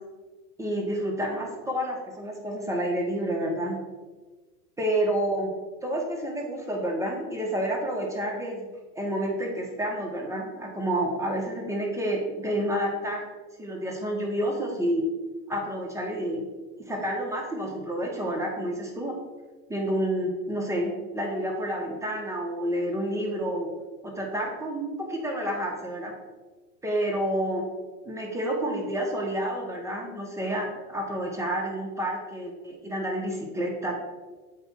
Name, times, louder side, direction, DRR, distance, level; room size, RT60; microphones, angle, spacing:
voice 1, 0.6-3.8 4.8-5.5 5.8-8.7 8.9-13.2 13.6-15.0 15.5-16.4 16.9-19.2 19.7-23.7 24.0-26.1 26.8-27.7 28.0-33.9, right 1 dB, 5° right, -1 dB, 1.3 m, -29 dB
7.9 x 2.7 x 4.6 m, 1.3 s
hypercardioid pair, 105°, 48 cm